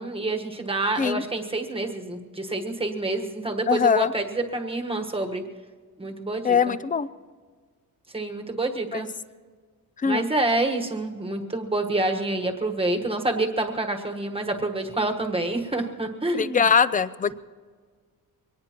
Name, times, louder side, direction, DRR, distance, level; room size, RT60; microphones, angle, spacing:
voice 1, 0.0-5.4 6.0-6.7 8.1-9.1 10.0-16.7, right 2 dB, 15° right, 4 dB, 1.3 m, -27 dB
voice 2, 3.7-4.1 6.4-7.1 8.9-9.0 10.0-10.3 16.3-17.3, left 6 dB, 25° left, 15 dB, 0.4 m, -22 dB
23.5 x 18.5 x 3.0 m, 1.5 s
wide cardioid pair, 165°, 36 cm